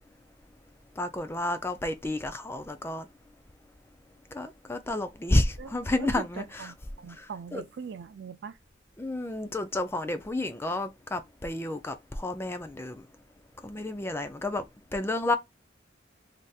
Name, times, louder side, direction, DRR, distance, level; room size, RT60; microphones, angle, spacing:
voice 1, 1.0-3.1 4.3-6.4 7.2-7.3 7.5-7.6 9.0-13.0 13.6-14.6 14.9-15.4, left 2 dB, 15° left, 0.4 m, -30 dB
voice 2, 5.6-8.6, right 6 dB, 60° right, 0.3 m, -41 dB
3.4 x 2.7 x 2.3 m
head